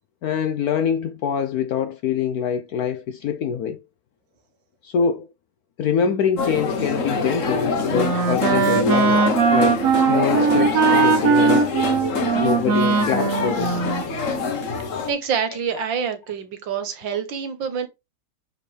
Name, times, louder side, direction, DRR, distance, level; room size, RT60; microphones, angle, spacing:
voice 1, 0.2-3.8 4.8-5.3 5.8-11.6 12.4-13.7, left 7 dB, 70° left, 0.9 m, -24 dB
sound 1, 6.4-15.1, left 4 dB, 45° left, 1.3 m, -25 dB
Wind instrument woodwind instrument, 7.4-14.6, right 5 dB, 55° right, 1.1 m, -20 dB
voice 2, 15.1-17.9, right 7 dB, 80° right, 1.9 m, -26 dB
6.4 x 5.2 x 3.3 m
omnidirectional pair, 2.1 m